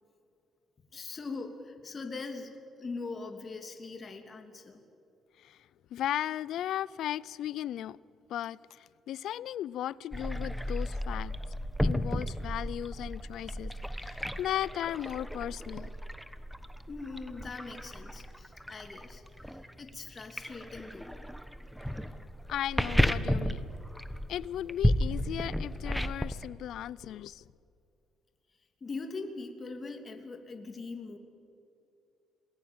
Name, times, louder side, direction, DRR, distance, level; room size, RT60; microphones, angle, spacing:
voice 1, 0.9-2.5 2.8-4.8 16.9-21.1 28.8-31.2, left 3 dB, 35° left, 2.7 m, -41 dB
voice 2, 5.9-8.0 8.3-11.3 11.8-15.9 21.8-22.2 22.5-23.6 24.3-27.4, left 11 dB, 75° left, 0.5 m, -36 dB
sound 1, 10.1-26.5, equal, ahead, 1.2 m, -33 dB
28.0 x 20.0 x 8.8 m
cardioid pair, 100°, 0 cm